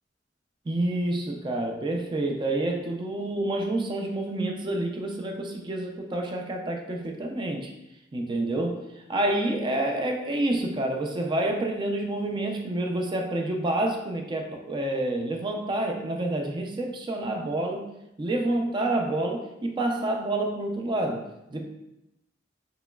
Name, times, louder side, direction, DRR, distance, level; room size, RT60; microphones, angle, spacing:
voice 1, 0.7-7.7 8.1-8.8 9.1-17.9 18.2-21.7, right 1 dB, 25° right, 2 dB, 0.3 m, -28 dB
2.9 x 2.9 x 2.2 m, 0.88 s
head